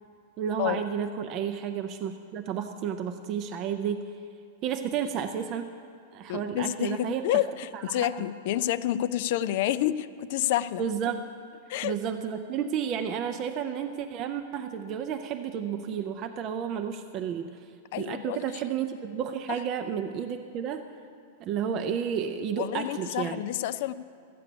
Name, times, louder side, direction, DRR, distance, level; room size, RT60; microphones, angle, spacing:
voice 1, 0.4-4.1 4.6-5.7 6.1-7.3 7.7-8.1 10.8-11.3 11.8-17.5 18.0-20.9 21.4-23.4, right 8 dB, 25° right, 6 dB, 0.4 m, -31 dB
voice 2, 6.3-10.8 11.7-11.9 17.9-18.6 22.6-23.9, left 13 dB, 45° left, 16 dB, 0.3 m, -29 dB
13.5 x 8.4 x 6.8 m, 2.3 s
supercardioid pair, 170°, 0 cm